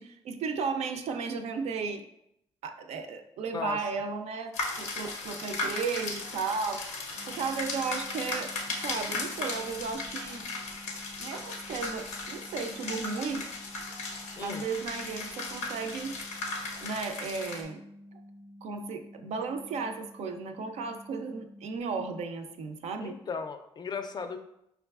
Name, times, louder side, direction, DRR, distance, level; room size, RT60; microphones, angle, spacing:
voice 1, 0.0-2.0 2.6-7.0 7.3-8.5 8.8-10.4 11.2-13.5 14.4-16.2 16.8-17.8 18.1-18.2 18.6-23.2, right 5 dB, 70° right, 7 dB, 0.4 m, -34 dB
sound 1, 4.5-17.6, left 3 dB, 90° left, 0.5 m, -37 dB
sound 2, 7.2-21.8, left 1 dB, 15° right, 0.5 m, -51 dB
voice 2, 14.4-14.7 23.0-24.4, left 5 dB, 40° left, 7 dB, 0.4 m, -36 dB
4.7 x 2.3 x 2.3 m, 0.79 s
supercardioid pair, 70°, 11 cm